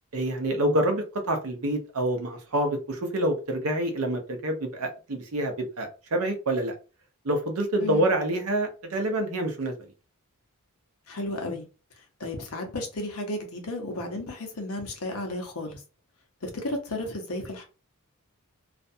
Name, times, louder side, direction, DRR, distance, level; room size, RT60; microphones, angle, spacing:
voice 1, 0.1-6.8 7.2-9.9, right 1 dB, 70° right, 0.7 m, -27 dB
voice 2, 7.8-8.1 11.1-11.7 12.2-15.8 16.4-17.7, left 1 dB, 70° left, 0.8 m, -33 dB
2.5 x 2.2 x 2.6 m
head